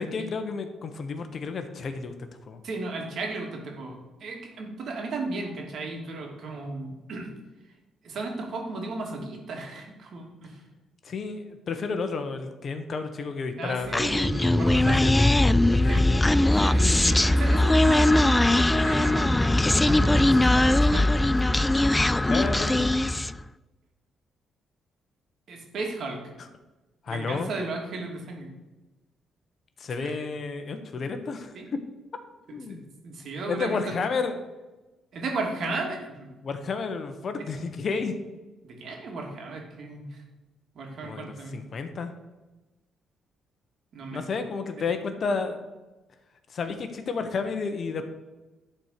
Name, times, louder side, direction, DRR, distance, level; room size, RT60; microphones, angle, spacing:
voice 1, 0.0-2.1 2.4-2.6 11.0-14.2 14.7-16.2 22.3-23.3 26.4-26.5 27.0-27.5 29.8-31.8 32.5-32.9 33.5-34.3 36.4-38.1 41.0-42.1 44.1-45.6 46.5-48.0, left 4 dB, 50° left, 7 dB, 1.2 m, -31 dB
voice 2, 2.6-7.3 8.0-10.6 13.6-15.2 15.9-16.0 16.5-21.7 25.5-26.2 27.1-28.5 30.0-30.1 31.5-31.7 33.0-33.8 35.1-36.3 38.6-40.2 40.7-41.6 43.9-44.2, right 3 dB, 65° right, 1 dB, 2.6 m, -35 dB
Human voice, 13.9-23.4, left 1 dB, 15° left, 0.3 m, -20 dB
11.5 x 4.6 x 6.7 m, 1.1 s
cardioid pair, 90°, 0 cm